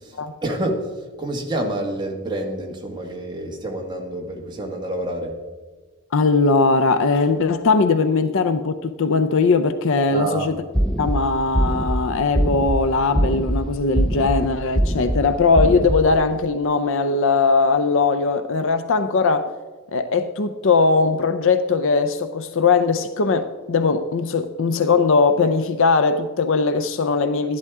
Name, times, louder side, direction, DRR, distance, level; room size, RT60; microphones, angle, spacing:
voice 1, 0.0-5.4 10.1-10.5, right 1 dB, 20° right, 1.5 m, -28 dB
voice 2, 6.1-10.5 11.0-19.5 19.9-27.6, left 4 dB, 60° left, 0.5 m, -19 dB
sound 1, 10.7-11.2 11.6-12.0 12.4-12.8 13.2-13.6 14.0-14.4 14.8-15.2 15.6-16.0, equal, 5° left, 0.6 m, -21 dB
12.5 x 11.0 x 3.6 m
head